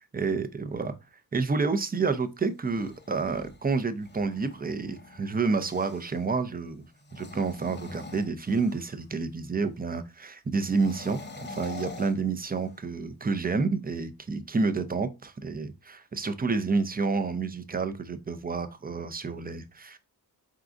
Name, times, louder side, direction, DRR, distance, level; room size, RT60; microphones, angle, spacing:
voice 1, 0.1-1.0 1.3-6.9 7.1-11.2 11.5-20.0, right 4 dB, 25° right, 0.5 m, -29 dB
sound 1, 2.5-6.2 7.0-9.0 10.6-12.9, left 3 dB, 30° left, 0.6 m, -45 dB
4.6 x 3.7 x 2.5 m
wide cardioid pair, 120°, 37 cm